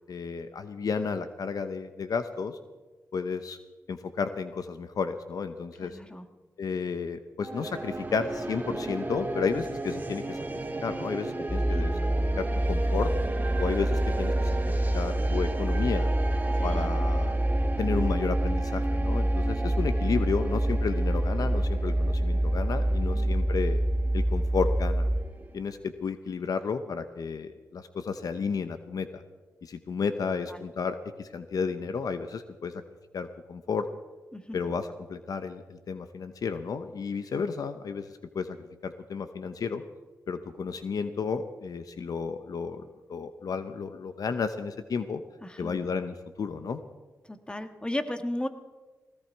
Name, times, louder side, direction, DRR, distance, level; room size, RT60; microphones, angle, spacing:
voice 1, 0.1-2.6 3.1-3.6 3.9-6.0 6.6-10.4 10.8-11.9 12.4-13.1 13.6-16.1 16.6-17.3 17.8-23.8 24.1-25.1 25.5-29.2 29.6-32.8 33.1-33.9 34.5-38.1 38.3-38.6 38.8-39.8 40.3-42.8 43.1-45.2 45.6-46.8, left 5 dB, 65° left, 10 dB, 0.9 m, -32 dB
voice 2, 5.8-6.3 11.6-11.9 16.6-16.9 22.9-23.3 30.5-30.6 34.3-34.6 37.4-37.5 45.4-45.9 47.3-48.5, left 1 dB, 15° left, 8 dB, 1.7 m, -36 dB
sound 1, 7.4-25.6, right 2 dB, 25° right, 1.8 m, -36 dB
sound 2, 11.5-25.2, right 1 dB, ahead, 6.3 m, -26 dB
18.0 x 17.0 x 4.6 m, 1.2 s
cardioid pair, 50°, 7 cm